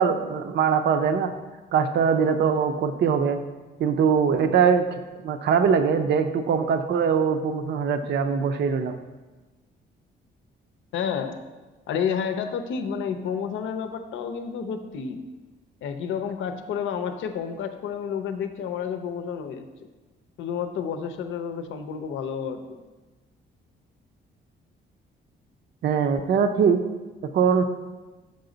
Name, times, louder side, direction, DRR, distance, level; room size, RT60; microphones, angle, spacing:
voice 1, 0.0-1.3 1.7-3.4 3.8-4.8 5.2-9.0 25.8-26.8 27.3-27.6, right 6 dB, 60° right, 7 dB, 0.5 m, -22 dB
voice 2, 10.9-11.4 11.9-15.2 15.8-19.6 20.4-22.8, left 7 dB, 75° left, 7 dB, 0.6 m, -30 dB
6.8 x 5.2 x 3.9 m, 1.2 s
cardioid pair, 90°, 20 cm